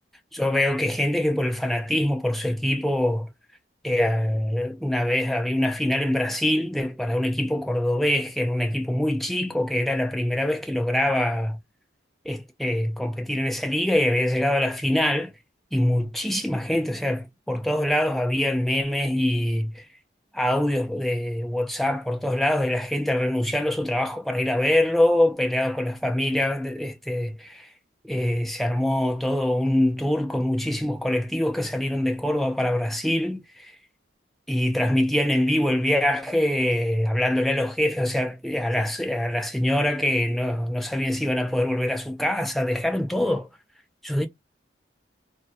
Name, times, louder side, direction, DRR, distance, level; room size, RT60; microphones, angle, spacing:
voice 1, 0.3-3.3 3.8-11.6 12.3-15.3 15.7-19.9 20.3-27.7 28.0-33.7 34.5-43.5 44.0-44.3, left 1 dB, ahead, 0.3 m, -24 dB
2.7 x 2.1 x 2.2 m
head